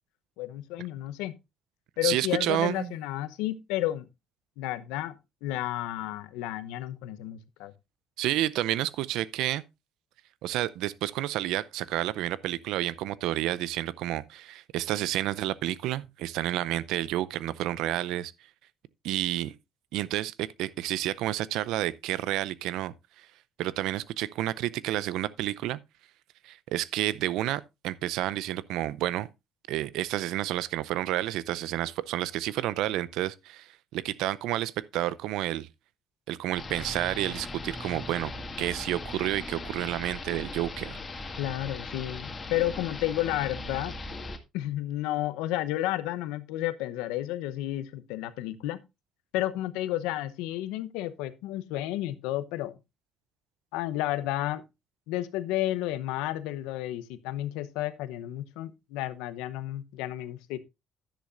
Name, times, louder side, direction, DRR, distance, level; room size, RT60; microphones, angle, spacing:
voice 1, 0.4-1.4 2.0-4.1 4.6-7.7 41.4-44.0 44.5-48.8 49.3-52.7 53.7-54.6 55.1-60.6, left 14 dB, 85° left, 0.8 m, -32 dB
voice 2, 2.0-2.9 8.2-9.6 10.4-18.3 19.0-19.5 19.9-23.3 23.6-25.8 26.4-29.3 29.7-35.7 36.3-38.3 38.6-41.0, right 14 dB, 75° right, 0.6 m, -30 dB
sound 1, 36.5-44.4, left 2 dB, 35° left, 2.0 m, -39 dB
11.5 x 10.0 x 2.5 m
supercardioid pair, 60°, 0 cm